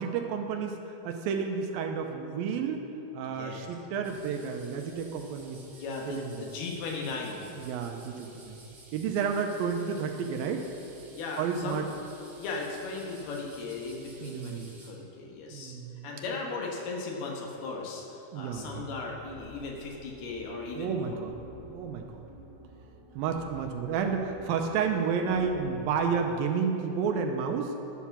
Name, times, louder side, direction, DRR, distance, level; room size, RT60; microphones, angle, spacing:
voice 1, 0.0-2.9 3.1-5.6 6.1-6.5 7.5-8.6 8.9-10.7 11.4-11.9 14.2-14.7 15.5-16.2 18.3-18.9 20.8-21.4 21.6-22.1 23.1-27.8, right 6 dB, 85° right, 4 dB, 2.3 m, -31 dB
voice 2, 3.2-3.6 5.7-7.5 11.1-11.8 12.4-15.8 16.0-21.3, left 3 dB, 90° left, -1 dB, 3.3 m, -37 dB
sound 1, 4.0-14.9, right 3 dB, 60° right, 0.8 m, -53 dB
sound 2, 18.5-26.1, right 2 dB, 40° left, 0.7 m, -52 dB
11.0 x 5.9 x 7.2 m, 2.9 s
omnidirectional pair, 4.4 m